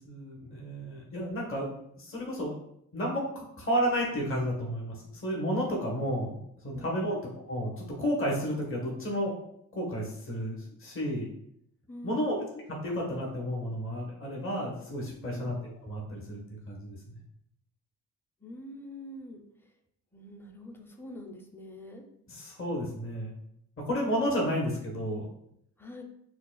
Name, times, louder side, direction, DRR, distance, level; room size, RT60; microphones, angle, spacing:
voice 1, 0.0-1.7 2.0-2.5 2.9-6.4 6.6-7.2 7.5-9.4 9.7-11.3 12.0-15.5 15.8-17.0 22.3-23.3 23.8-25.3, equal, 30° left, -2 dB, 1.2 m, -32 dB
voice 2, 6.7-7.2 11.9-12.5 15.4-15.6 18.4-19.4 20.1-22.0 25.8-26.0, left 1 dB, 5° left, 3 dB, 0.6 m, -45 dB
5.7 x 2.3 x 2.4 m, 0.73 s
supercardioid pair, 70°, 40 cm